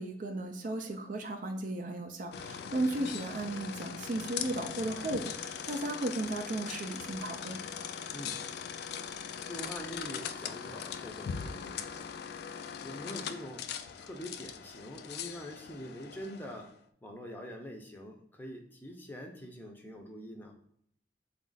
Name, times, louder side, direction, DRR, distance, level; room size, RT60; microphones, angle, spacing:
voice 1, 0.0-7.6, right 2 dB, 45° right, 5 dB, 0.4 m, -35 dB
sound 1, 2.3-16.7, left 7 dB, 60° left, 0.3 m, -40 dB
voice 2, 2.5-2.8 8.1-8.4 9.5-12.1 12.8-13.7 14.0-16.7 17.0-20.6, equal, 10° left, 1 dB, 0.6 m, -44 dB
4.0 x 2.4 x 3.8 m, 0.70 s
head